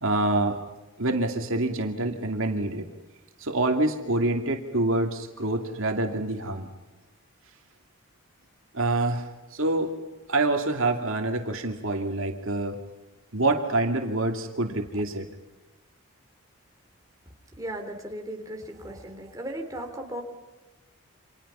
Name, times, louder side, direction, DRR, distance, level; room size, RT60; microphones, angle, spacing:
voice 1, 0.0-0.6 1.0-2.9 3.4-6.7 8.7-9.9 10.3-12.8 13.3-15.3, right 2 dB, 65° right, 4 dB, 2.5 m, -26 dB
voice 2, 17.6-20.2, right 1 dB, 15° right, 2 dB, 3.4 m, -36 dB
30.0 x 26.5 x 5.6 m, 1.1 s
head